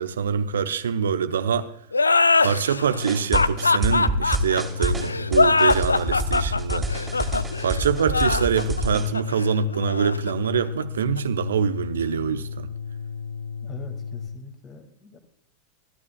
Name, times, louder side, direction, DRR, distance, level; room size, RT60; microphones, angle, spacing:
voice 1, 0.0-1.7 2.4-6.9 7.6-12.7, right 7 dB, 65° right, 0.7 m, -24 dB
sound 1, 1.9-11.2, left 3 dB, 80° left, 0.4 m, -22 dB
sound 2, 2.8-14.3, left 6 dB, 60° left, 1.5 m, -34 dB
sound 3, 3.0-9.1, right 1 dB, 10° right, 2.5 m, -27 dB
voice 2, 13.6-15.2, left 3 dB, 25° left, 2.1 m, -43 dB
26.0 x 12.0 x 2.3 m
figure-of-eight pair, 90°, 0 cm